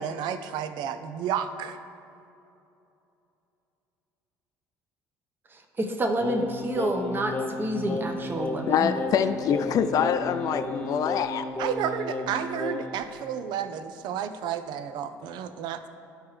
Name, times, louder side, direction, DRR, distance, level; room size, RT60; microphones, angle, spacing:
voice 1, 0.0-1.8 11.6-15.9, right 8 dB, 70° right, 10 dB, 0.5 m, -31 dB
voice 2, 5.5-8.9, right 1 dB, 25° right, 4 dB, 0.9 m, -29 dB
Singing, 6.2-13.0, left 2 dB, 15° left, 1.0 m, -33 dB
voice 3, 8.7-11.5, left 8 dB, 50° left, 10 dB, 0.4 m, -25 dB
12.5 x 4.7 x 3.2 m, 2.8 s
supercardioid pair, 90°, 8 cm